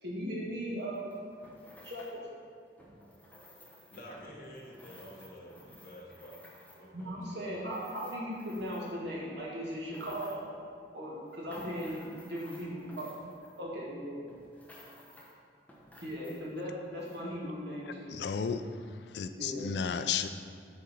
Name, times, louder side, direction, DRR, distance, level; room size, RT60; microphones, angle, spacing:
voice 1, 0.0-1.1 1.8-2.2 6.9-10.4 10.9-13.1 13.6-14.2 16.0-18.1 19.3-19.7, equal, 70° right, -5 dB, 2.0 m, -38 dB
sound 1, 0.8-2.2 2.7-9.1 9.6-10.6 11.1-13.9 14.3-15.4 15.7-16.6 17.0-17.2, left 1 dB, 10° left, 0.9 m, -55 dB
voice 2, 3.9-6.4 6.7-7.5, equal, 55° left, -2 dB, 1.3 m, -49 dB
voice 3, 18.1-18.7 19.1-20.3, left 6 dB, 70° left, 9 dB, 0.4 m, -33 dB
8.3 x 4.4 x 5.3 m, 2.2 s
head